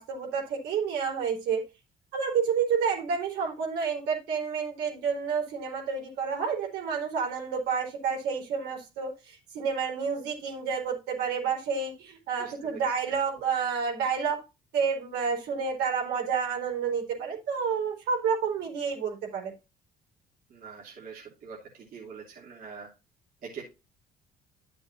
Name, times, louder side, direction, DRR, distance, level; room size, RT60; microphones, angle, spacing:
voice 1, 0.0-1.6 2.1-14.4 14.7-19.5, right 6 dB, 80° right, 4.3 m, -29 dB
voice 2, 20.5-22.9 23.4-23.7, right 5 dB, 55° right, 3.1 m, -44 dB
11.5 x 6.8 x 2.7 m
cardioid pair, 110°, 17 cm